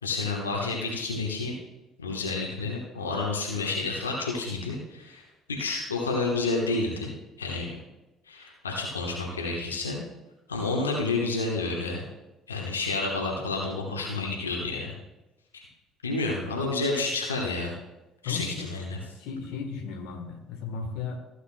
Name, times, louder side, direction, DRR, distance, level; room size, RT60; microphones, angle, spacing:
voice 1, 0.0-1.5 2.0-5.2 5.5-7.1 7.4-7.8 8.3-10.0 10.5-12.1 12.5-15.0 15.5-15.6 16.0-17.7 18.2-19.0, left 3 dB, 90° left, -1 dB, 1.1 m, -30 dB
voice 2, 18.2-18.7 19.2-21.2, left 5 dB, 70° left, 4 dB, 1.2 m, -35 dB
15.0 x 8.0 x 2.2 m, 1.0 s
hypercardioid pair, 55°, 0 cm